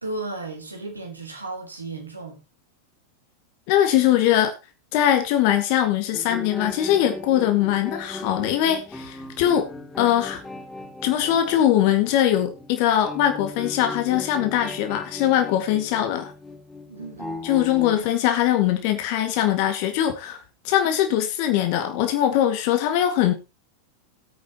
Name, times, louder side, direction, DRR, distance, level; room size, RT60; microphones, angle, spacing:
voice 1, 0.0-2.4 16.9-17.4 17.9-18.0, right 2 dB, 80° right, 3.6 m, -34 dB
voice 2, 3.7-4.6 4.9-9.7 10.0-10.4 11.0-16.3 17.4-23.3, left 11 dB, 45° left, 2.0 m, -21 dB
sound 1, 6.1-18.0, left 2 dB, 10° left, 2.2 m, -38 dB
18.5 x 8.6 x 3.0 m
figure-of-eight pair, 90°, 0 cm